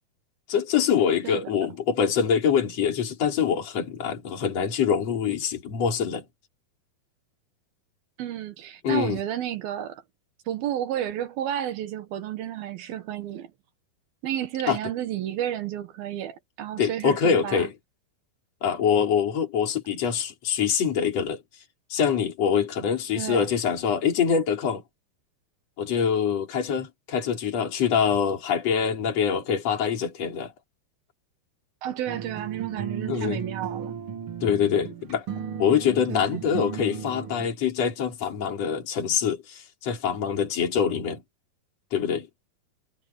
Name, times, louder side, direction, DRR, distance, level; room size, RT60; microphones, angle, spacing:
voice 1, 0.5-6.2 8.8-9.2 14.7-14.8 16.8-17.7 18.6-21.4 21.9-24.8 25.8-30.5 33.1-33.4 34.4-35.2 35.6-41.2 41.9-42.3, left 7 dB, 40° left, 4.8 m, -24 dB
voice 2, 8.2-10.0 10.5-13.5 14.2-17.7 23.2-23.5 31.8-34.0 36.1-36.4, right 11 dB, 70° right, 3.0 m, -31 dB
sound 1, 32.1-37.5, right 7 dB, 45° right, 1.9 m, -35 dB
omnidirectional pair, 4.7 m